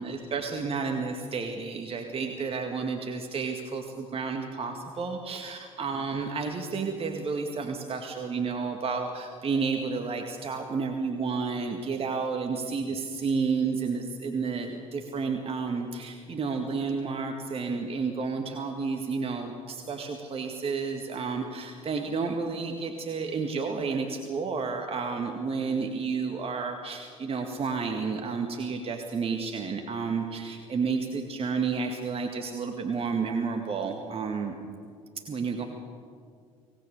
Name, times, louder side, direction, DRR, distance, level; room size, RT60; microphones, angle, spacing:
voice 1, 0.0-34.6 35.3-35.6, right 5 dB, 30° right, 3 dB, 2.1 m, -31 dB
25.0 x 19.0 x 7.0 m, 2.2 s
figure-of-eight pair, 60°, 18 cm